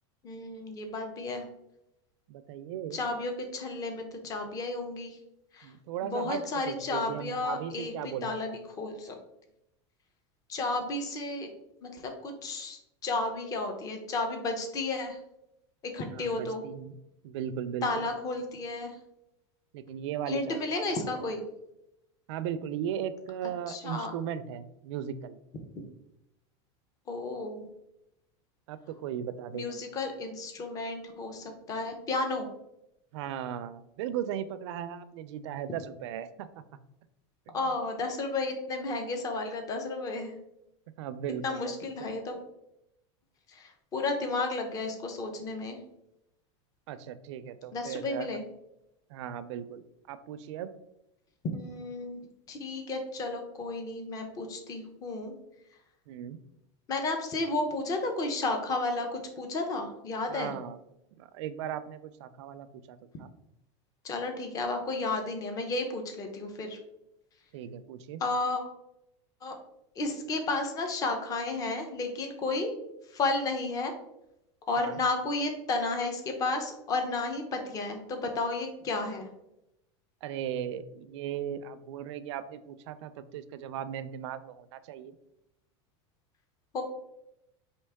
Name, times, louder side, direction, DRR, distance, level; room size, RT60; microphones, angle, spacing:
voice 1, 0.2-1.5 2.9-5.2 5.5-5.7 6.0-9.1 10.5-11.5 11.8-15.2 15.8-16.6 17.8-19.0 20.3-21.5 23.7-24.1 25.8-25.9 27.1-27.7 29.5-32.5 37.5-40.3 41.4-42.4 43.5-45.8 47.7-48.4 51.5-55.3 56.9-60.5 64.0-66.8 68.2-68.6 69.4-69.5 70.0-72.7 73.1-73.9 74.7-79.3 86.7-86.8, left 2 dB, 25° left, 5 dB, 0.6 m, -32 dB
voice 2, 2.3-3.0 5.6-6.4 6.6-8.6 16.1-17.0 17.2-18.0 19.7-20.9 22.3-25.4 28.7-29.7 33.1-36.6 37.5-37.6 41.0-41.7 46.9-48.3 49.1-50.7 56.1-56.4 60.3-60.8 61.2-63.3 67.5-68.2 74.8-75.0 80.2-85.1, right 9 dB, 75° right, 12 dB, 0.4 m, -37 dB
4.5 x 2.8 x 3.4 m, 0.86 s
supercardioid pair, 150°, 15 cm